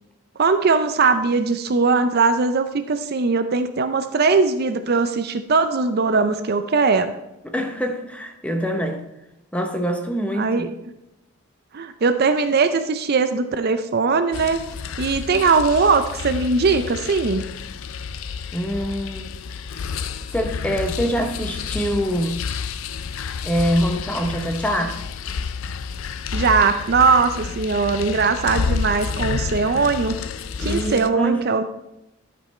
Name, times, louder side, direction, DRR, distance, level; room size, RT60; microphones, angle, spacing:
voice 1, 0.4-7.1 10.4-10.7 11.7-14.6 15.0-17.4 26.3-30.2 30.6-31.6, right 4 dB, 45° right, 9 dB, 0.5 m, -20 dB
voice 2, 7.4-9.0 9.5-10.7 18.5-19.3 20.3-22.4 23.4-25.0 30.6-31.4, equal, 5° left, 4 dB, 0.8 m, -24 dB
sound 1, 14.3-31.1, left 5 dB, 70° left, 0.5 m, -30 dB
12.0 x 5.2 x 4.3 m, 0.89 s
head